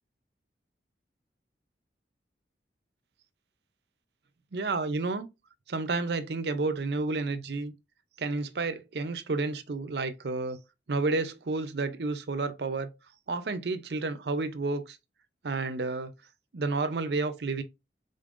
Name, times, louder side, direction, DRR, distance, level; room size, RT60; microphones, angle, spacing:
voice 1, 4.5-5.3 5.7-7.7 8.2-10.6 10.9-12.9 13.3-15.0 15.4-16.1 16.5-17.6, right 3 dB, 65° right, 0.6 m, -30 dB
5.2 x 3.9 x 2.5 m
head